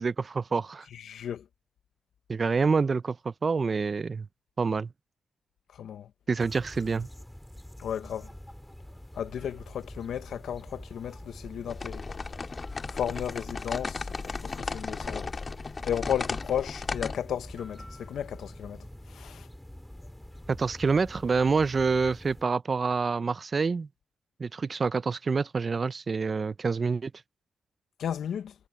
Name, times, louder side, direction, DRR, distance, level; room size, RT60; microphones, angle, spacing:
voice 1, 0.0-0.9 2.3-4.3 4.6-4.9 6.3-7.1 20.5-23.9 24.4-27.1, right 4 dB, 45° right, 0.6 m, -27 dB
voice 2, 0.9-1.5 5.8-6.1 7.8-8.3 9.1-12.0 12.9-15.3 15.8-19.5 28.0-28.5, left 9 dB, 80° left, 1.1 m, -34 dB
sound 1, 6.4-22.4, equal, 5° left, 4.0 m, -46 dB
sound 2, 11.7-17.2, left 4 dB, 40° left, 2.4 m, -35 dB
cardioid pair, 65°, 0 cm